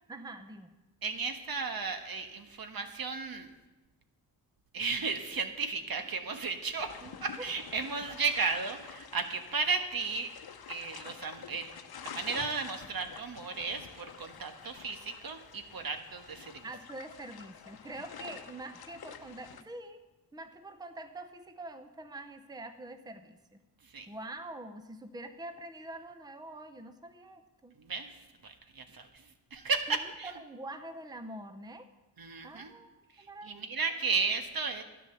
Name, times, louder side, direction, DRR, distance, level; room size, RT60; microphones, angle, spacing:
voice 1, 0.1-0.7 7.0-7.2 16.6-20.0 20.3-23.6 24.1-27.8 29.9-30.0 30.2-31.9 32.4-33.7, right 2 dB, 10° right, 8 dB, 0.8 m, -45 dB
voice 2, 1.0-3.5 4.7-7.0 7.2-10.3 10.7-11.7 12.0-16.6 23.9-24.1 27.8-29.2 29.5-30.3 32.2-32.7 33.2-34.8, right 4 dB, 60° right, 6 dB, 1.4 m, -34 dB
sound 1, 6.8-19.6, left 8 dB, 60° left, 0.9 m, -49 dB
12.5 x 10.0 x 6.9 m, 1.1 s
wide cardioid pair, 105°, 41 cm